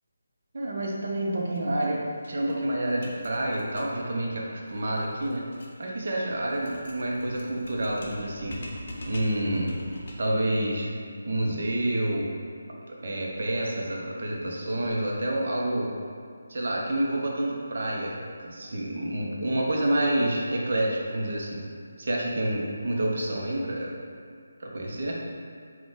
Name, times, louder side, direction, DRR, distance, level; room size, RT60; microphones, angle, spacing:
voice 1, 0.5-5.4 5.8-8.6 9.1-9.7 10.2-10.9 11.2-12.3 12.7-15.9 16.5-21.6 22.0-23.9 24.6-25.1, right 1 dB, 60° right, -2 dB, 0.7 m, -28 dB
sound 1, 1.5-1.6 1.9-2.0 2.2-10.4, equal, 50° left, 0.7 m, -44 dB
3.8 x 2.4 x 3.8 m, 2.3 s
figure-of-eight pair, 155°, 0 cm